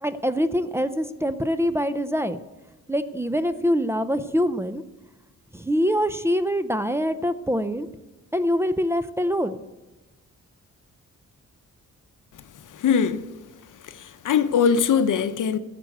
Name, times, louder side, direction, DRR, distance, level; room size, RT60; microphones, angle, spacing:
voice 1, 0.0-2.4 2.9-4.8 5.5-7.9 8.3-9.6, equal, 10° right, 0.6 m, -24 dB
voice 2, 12.7-13.3 13.8-15.6, left 7 dB, 75° left, 0.8 m, -22 dB
13.0 x 7.6 x 7.8 m
cardioid pair, 110°, 32 cm